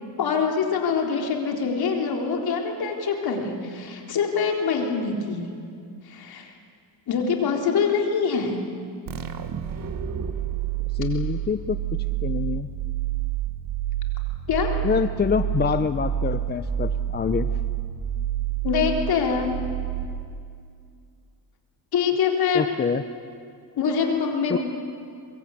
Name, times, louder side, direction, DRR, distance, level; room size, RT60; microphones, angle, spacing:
voice 1, 0.2-5.5 6.1-6.5 7.1-8.6 14.5-14.7 18.6-19.5 21.9-22.7 23.8-24.6, left 6 dB, 60° left, 2 dB, 3.9 m, -24 dB
sound 1, 9.1-20.5, right 10 dB, 50° right, 1.7 m, -28 dB
voice 2, 10.9-11.8 12.2-12.7 14.8-17.5 22.5-23.0 24.5-24.6, left 6 dB, 25° left, 11 dB, 0.6 m, -25 dB
23.0 x 23.0 x 8.5 m, 2.3 s
cardioid pair, 120°, 41 cm